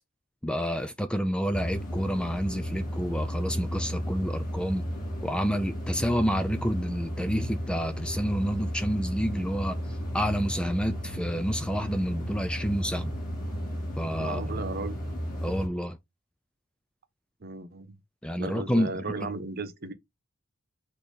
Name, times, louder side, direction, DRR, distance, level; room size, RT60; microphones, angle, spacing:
voice 1, 0.4-4.8 5.2-9.8 10.1-13.1 14.0-14.6 15.4-16.0 18.2-19.2, equal, 5° left, 0.3 m, -29 dB
sound 1, 1.5-15.7, equal, 40° left, 2.6 m, -33 dB
voice 2, 14.2-15.0 17.4-18.0 18.4-19.9, right 3 dB, 45° right, 0.9 m, -35 dB
6.3 x 2.9 x 5.2 m
head